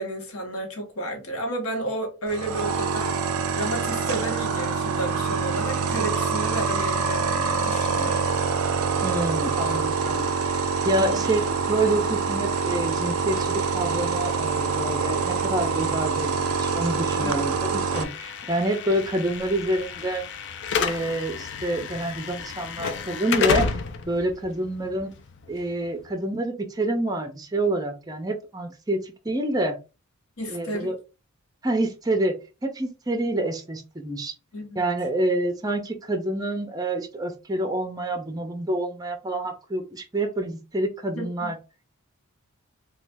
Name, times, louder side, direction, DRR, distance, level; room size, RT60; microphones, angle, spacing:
voice 1, 0.0-8.3 11.0-11.2 17.2-17.6 30.4-30.9 34.5-34.8 41.2-41.5, right 1 dB, 75° left, 1.1 m, -32 dB
sound 1, 2.3-18.0, right 5 dB, 75° right, 0.5 m, -25 dB
voice 2, 9.0-10.3 10.8-20.2 20.8-23.8 24.1-25.1 25.5-29.8 30.5-31.0 31.6-32.4 32.6-34.3 34.8-41.6, right 1 dB, 15° right, 0.5 m, -27 dB
Slam / Alarm, 17.9-26.0, left 6 dB, 50° left, 0.4 m, -30 dB
3.1 x 2.3 x 3.3 m
head